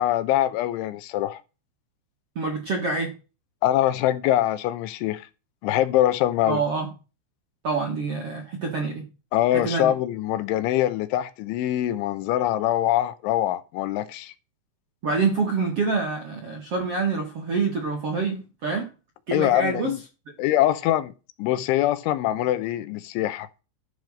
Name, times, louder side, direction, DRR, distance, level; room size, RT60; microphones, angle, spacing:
voice 1, 0.0-1.4 3.6-5.3 5.6-6.6 9.3-14.3 19.3-20.0 20.4-21.1 21.4-23.5, left 13 dB, 80° left, 3.2 m, -23 dB
voice 2, 2.4-3.1 6.5-6.9 7.6-9.1 9.5-9.9 15.0-18.9 19.3-19.9, right 4 dB, 50° right, 1.8 m, -26 dB
12.0 x 6.2 x 6.5 m
omnidirectional pair, 5.7 m